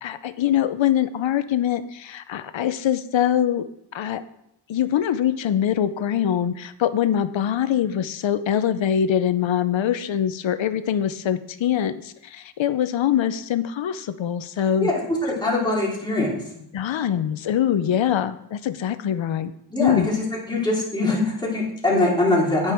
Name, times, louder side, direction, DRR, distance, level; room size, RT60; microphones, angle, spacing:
voice 1, 0.0-3.7 3.9-4.2 4.7-14.9 16.7-19.5 19.8-20.1, left 10 dB, 75° left, 12 dB, 0.7 m, -23 dB
voice 2, 15.4-16.4 19.7-20.1 20.5-22.7, left 2 dB, 10° left, -5 dB, 3.2 m, -22 dB
9.2 x 8.8 x 4.5 m, 0.78 s
wide cardioid pair, 145°, 46 cm